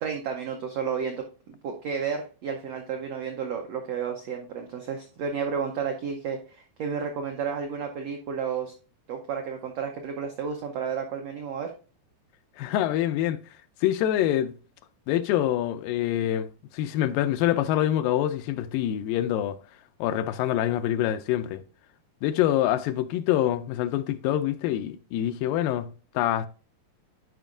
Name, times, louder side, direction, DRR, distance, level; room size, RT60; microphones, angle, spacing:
voice 1, 0.0-8.7 9.1-11.7, right 6 dB, 85° right, 1.4 m, -32 dB
voice 2, 12.6-13.4 13.8-14.5 15.1-19.6 20.0-21.6 22.2-26.5, left 12 dB, 80° left, 2.2 m, -25 dB
11.0 x 5.1 x 2.5 m
omnidirectional pair, 4.1 m